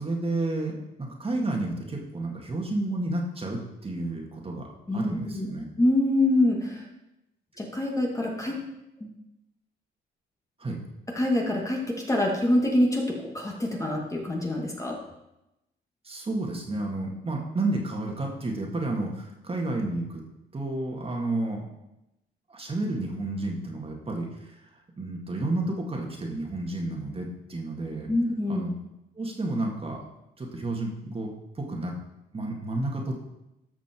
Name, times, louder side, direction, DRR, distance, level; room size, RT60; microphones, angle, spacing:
voice 1, 0.0-5.7 10.6-10.8 16.0-20.2 20.5-21.7 22.5-24.7 25.0-28.1 28.5-28.7 29.2-30.0 30.4-31.3 31.6-31.9 32.3-33.1, right 2 dB, 30° right, 0 dB, 2.2 m, -31 dB
voice 2, 4.9-6.8 7.6-8.6 9.0-9.1 11.1-15.0 28.1-28.7, left 1 dB, 15° left, 0 dB, 2.1 m, -25 dB
13.0 x 6.0 x 4.6 m, 0.90 s
cardioid pair, 90°, 20 cm